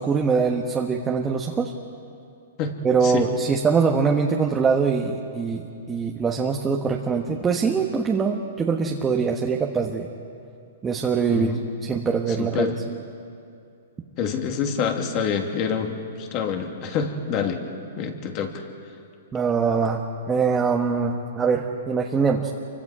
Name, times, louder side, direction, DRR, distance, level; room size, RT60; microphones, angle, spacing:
voice 1, 0.0-1.7 2.8-10.1 10.8-12.7 19.3-22.5, right 5 dB, 15° right, 1 dB, 1.4 m, -23 dB
voice 2, 2.6-3.3 11.3-11.7 12.3-12.8 14.2-17.6 18.0-18.6, left 6 dB, 40° left, 4 dB, 2.6 m, -27 dB
28.0 x 24.5 x 5.0 m, 2.5 s
hypercardioid pair, 135°, 0 cm